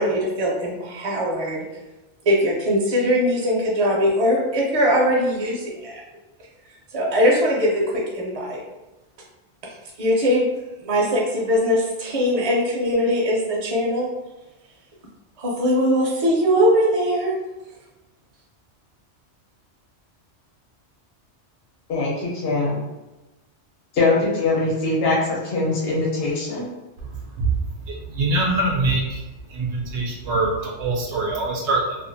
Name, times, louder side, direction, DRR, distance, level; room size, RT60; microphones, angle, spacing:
voice 1, 0.0-1.6 2.3-6.0 6.9-8.6 10.0-10.5 10.8-14.1 15.4-17.3, equal, 40° right, -2 dB, 0.6 m, -21 dB
voice 2, 21.9-22.8 23.9-26.7, left 3 dB, 60° left, -5 dB, 1.1 m, -22 dB
voice 3, 27.9-29.2 29.5-32.0, right 2 dB, 75° right, -1 dB, 0.9 m, -23 dB
2.6 x 2.4 x 2.6 m, 1.0 s
omnidirectional pair, 1.2 m